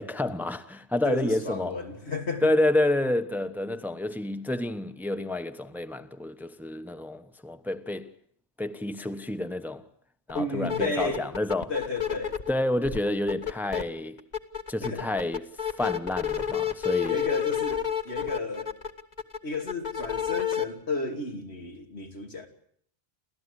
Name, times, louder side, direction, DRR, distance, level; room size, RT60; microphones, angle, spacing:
voice 1, 0.0-1.8 2.4-8.1 8.6-9.8 10.3-11.7 12.5-14.2 14.7-17.2, left 1 dB, ahead, 1.0 m, -29 dB
voice 2, 1.0-2.5 10.3-11.3 11.7-12.4 14.8-15.1 17.1-18.7 19.4-22.5, left 2 dB, 85° left, 3.2 m, -33 dB
sound 1, 10.3-10.4 10.7-12.5 12.8-13.8 14.2-20.6, left 9 dB, 40° left, 1.4 m, -30 dB
29.0 x 14.0 x 9.8 m
omnidirectional pair, 1.1 m